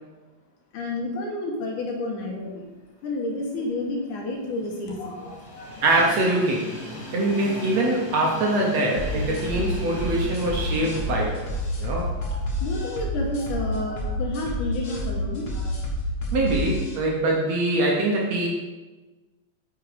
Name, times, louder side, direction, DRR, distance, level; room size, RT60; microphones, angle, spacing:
voice 1, 0.7-2.7 3.0-5.9 12.2-15.7, left 2 dB, 70° left, 1 dB, 2.5 m, -30 dB
Train, 3.5-13.6 14.1-14.2 15.3-15.4, left 1 dB, 15° left, 1.5 m, -40 dB
voice 2, 5.8-6.7 7.1-11.5 11.8-12.2 16.3-18.5, right 2 dB, 65° right, -1 dB, 1.9 m, -23 dB
sound 1, 9.0-17.0, left 1 dB, 45° left, 1.5 m, -29 dB
8.7 x 6.0 x 5.0 m, 1.2 s
omnidirectional pair, 4.0 m